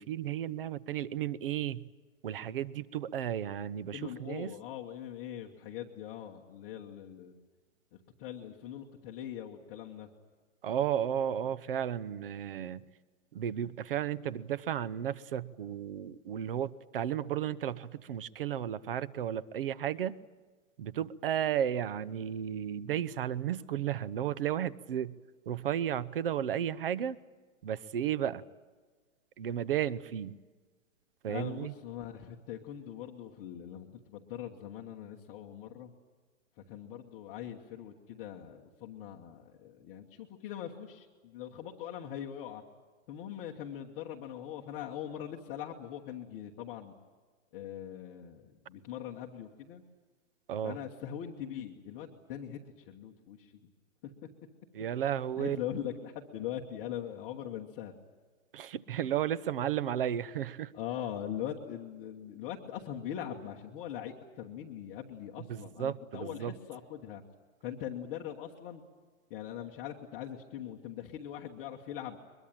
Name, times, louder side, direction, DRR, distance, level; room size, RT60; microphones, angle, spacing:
voice 1, 0.0-1.9 2.2-4.5 10.6-12.8 13.3-20.2 20.8-25.1 25.5-27.2 27.6-28.4 29.4-30.4 31.2-31.7 50.5-50.8 54.7-55.6 58.5-60.7 65.4-66.5, right 10 dB, 45° right, 20 dB, 0.8 m, -33 dB
voice 2, 3.9-7.3 8.2-10.1 31.3-35.9 36.6-42.6 43.1-46.9 47.5-49.8 50.6-52.6 52.9-53.6 54.0-54.1 55.4-57.9 60.7-67.2 67.6-68.8 69.3-72.2, left 10 dB, 15° left, -1 dB, 1.0 m, -41 dB
22.5 x 22.0 x 9.0 m, 1.4 s
hypercardioid pair, 165°, 40 cm